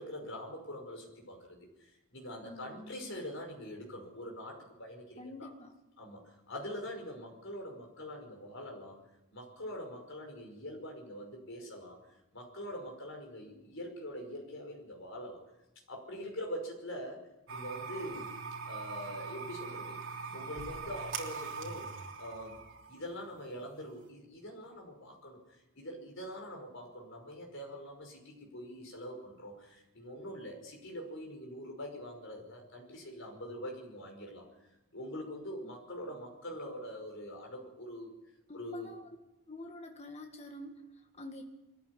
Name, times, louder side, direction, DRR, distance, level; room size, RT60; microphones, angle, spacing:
voice 1, 0.0-5.5 6.0-9.0 9.3-12.0 12.3-15.4 15.9-17.2 17.5-18.4 18.6-20.0 20.3-21.9 22.2-22.6 22.9-34.5 34.9-38.1 38.5-38.9, equal, 60° left, 2 dB, 5.5 m, -44 dB
voice 2, 2.4-3.2 5.2-5.8 35.6-35.7 36.1-36.2 38.5-39.2 39.5-41.4, left 1 dB, 30° left, 3 dB, 1.9 m, -48 dB
sound 1, 17.5-24.1, right 5 dB, 60° right, 3.2 m, -42 dB
22.0 x 14.5 x 9.8 m, 1.0 s
head